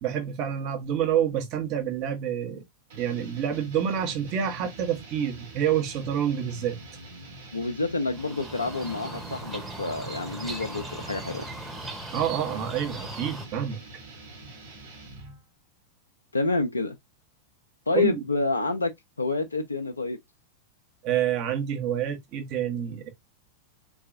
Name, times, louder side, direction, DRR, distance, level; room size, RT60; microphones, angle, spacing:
voice 1, 0.0-2.6 3.0-6.8 12.1-13.8 17.9-18.2 21.0-23.1, right 9 dB, 40° right, 1.1 m, -28 dB
sound 1, 2.9-15.4, right 2 dB, 60° right, 1.4 m, -45 dB
voice 2, 7.5-11.5 16.3-17.0 17.9-18.9 19.2-20.2, left 3 dB, 80° left, 0.4 m, -28 dB
sound 2, 8.1-13.5, right 1 dB, 10° right, 1.1 m, -39 dB
3.8 x 2.7 x 2.4 m
figure-of-eight pair, 90°, 0 cm